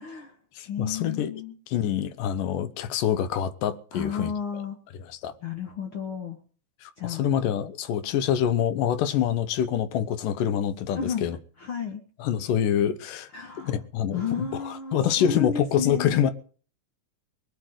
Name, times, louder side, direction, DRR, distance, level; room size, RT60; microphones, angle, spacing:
voice 1, 0.0-0.4 0.6-1.5 3.9-4.8 5.4-6.4 7.0-7.3 10.9-11.2 11.6-12.0 13.3-13.7 14.1-16.3, left 6 dB, 55° left, 1.7 m, -32 dB
voice 2, 0.6-1.3 1.7-4.3 5.0-5.3 6.8-11.4 12.2-13.3 13.6-16.3, left 9 dB, 75° left, 2.5 m, -26 dB
20.5 x 7.6 x 7.9 m
omnidirectional pair, 3.9 m